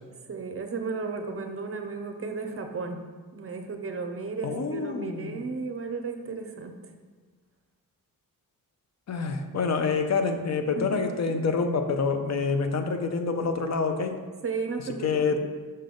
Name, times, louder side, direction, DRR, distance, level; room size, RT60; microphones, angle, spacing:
voice 1, 0.3-3.0 3.3-6.7 10.6-11.5 14.4-15.4, right 4 dB, 40° right, 5 dB, 0.6 m, -34 dB
voice 2, 4.4-5.4 9.1-14.2 15.0-15.5, left 4 dB, 50° left, 6 dB, 0.6 m, -27 dB
5.5 x 5.2 x 3.8 m, 1.5 s
wide cardioid pair, 130°, 35 cm